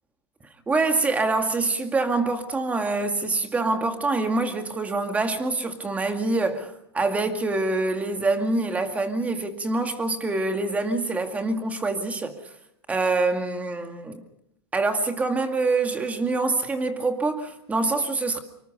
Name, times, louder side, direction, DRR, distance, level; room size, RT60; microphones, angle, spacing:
voice 1, 0.7-12.3 12.9-14.2 14.7-18.4, right 3 dB, 10° right, 2.1 m, -25 dB
26.0 x 24.0 x 5.4 m
supercardioid pair, 155°, 14 cm